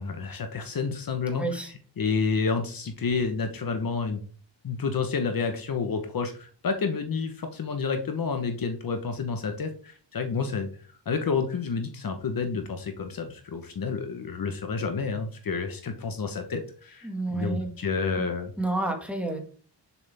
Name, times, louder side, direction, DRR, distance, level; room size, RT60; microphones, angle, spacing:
voice 1, 0.0-1.5 2.0-4.2 4.6-10.7 11.0-18.5, left 5 dB, 50° left, 6 dB, 1.2 m, -29 dB
voice 2, 1.3-1.7 17.0-17.7 18.6-19.4, right 2 dB, 5° right, 2 dB, 2.1 m, -30 dB
11.0 x 7.2 x 3.6 m, 0.42 s
wide cardioid pair, 170°, 44 cm